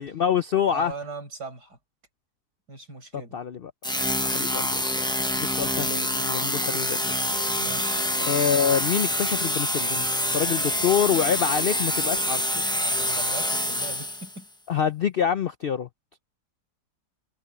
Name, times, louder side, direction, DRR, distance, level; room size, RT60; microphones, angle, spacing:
voice 1, 0.0-0.9 3.3-3.7 4.2-5.1 5.3-7.0 8.3-10.1 10.3-12.6 14.7-15.9, left 8 dB, 85° left, 0.5 m, -26 dB
voice 2, 0.7-1.8 2.7-3.4 7.6-8.1 12.8-14.5, right 3 dB, 80° right, 6.9 m, -39 dB
sound 1, 3.8-14.4, left 1 dB, 5° left, 0.6 m, -26 dB
omnidirectional pair, 1.8 m